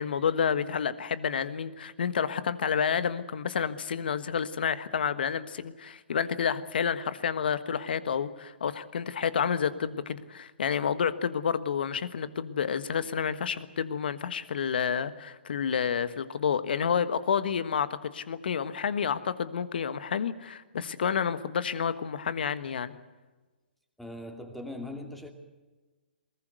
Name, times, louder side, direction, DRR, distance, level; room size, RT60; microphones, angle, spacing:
voice 1, 0.0-22.9, left 7 dB, 65° left, 14 dB, 1.4 m, -29 dB
voice 2, 24.0-25.3, left 1 dB, ahead, 4 dB, 2.6 m, -40 dB
21.5 x 19.5 x 8.0 m, 1.2 s
hypercardioid pair, 130°, 6 cm